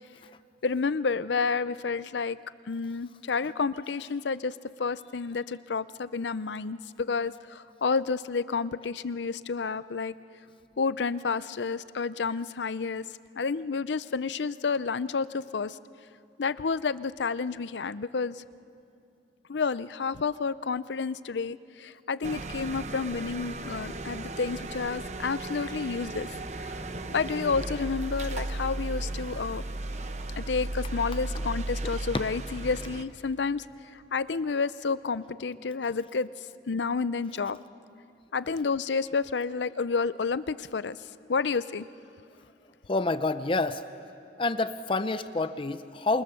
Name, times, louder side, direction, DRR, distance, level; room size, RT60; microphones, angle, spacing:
voice 1, 0.6-2.4 2.7-4.5 4.8-10.1 10.8-13.0 13.4-15.8 16.4-18.4 19.5-26.3 26.6-26.8 27.1-29.6 30.4-33.6 34.1-36.3 36.7-37.6 38.3-41.0 41.3-41.9, left 4 dB, 85° left, 16 dB, 0.6 m, -30 dB
sound 1, 22.2-33.0, right 2 dB, 40° right, 0.9 m, -35 dB
voice 2, 42.9-43.8 44.4-46.2, left 2 dB, 30° left, 12 dB, 0.6 m, -28 dB
26.5 x 24.5 x 7.0 m, 2.7 s
head